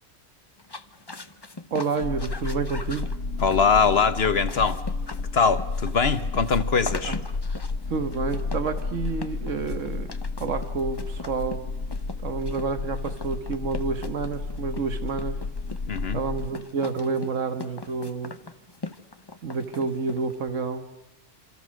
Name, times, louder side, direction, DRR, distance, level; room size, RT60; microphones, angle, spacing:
sound 1, 0.6-20.5, left 3 dB, 20° left, 0.9 m, -41 dB
voice 1, 1.7-3.2 7.1-7.2 7.9-11.7 12.2-15.4 16.1-18.4 19.4-20.8, right 5 dB, 90° right, 1.8 m, -29 dB
sound 2, 2.0-16.5, left 3 dB, 90° left, 1.8 m, -32 dB
voice 2, 3.4-4.8 5.3-7.2 15.9-16.2, left 5 dB, 55° left, 1.3 m, -22 dB
27.5 x 26.5 x 6.4 m
omnidirectional pair, 1.3 m